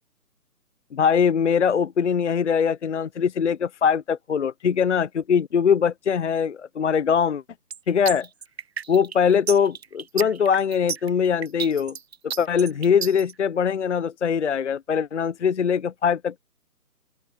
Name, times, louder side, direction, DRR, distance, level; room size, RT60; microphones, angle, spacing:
voice 1, 0.9-7.4 7.9-8.3 8.9-12.0 12.4-16.4, left 7 dB, 50° left, 0.8 m, -22 dB
sound 1, 7.7-13.3, right 7 dB, 40° right, 1.2 m, -32 dB
open air
hypercardioid pair, 165°, 47 cm